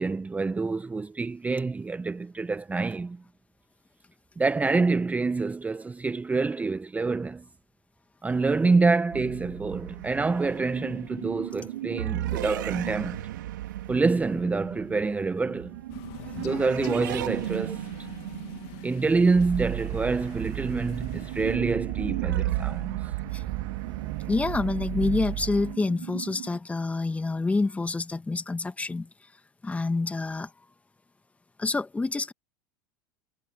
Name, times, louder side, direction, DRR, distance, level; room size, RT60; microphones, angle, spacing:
voice 1, 0.0-3.2 4.4-7.4 8.2-13.3 13.9-15.8 16.4-17.8 18.8-23.1, right 3 dB, 15° right, 0.8 m, -26 dB
sound 1, 9.1-26.6, right 14 dB, 80° right, 3.6 m, -36 dB
Crow, 15.9-21.6, left 22 dB, 60° left, 2.2 m, -45 dB
sound 2, 19.4-25.7, right 17 dB, 55° right, 1.8 m, -34 dB
voice 2, 24.3-29.1 29.6-30.5 31.6-32.3, left 3 dB, 15° left, 1.6 m, -27 dB
hypercardioid pair, 95°, 10 cm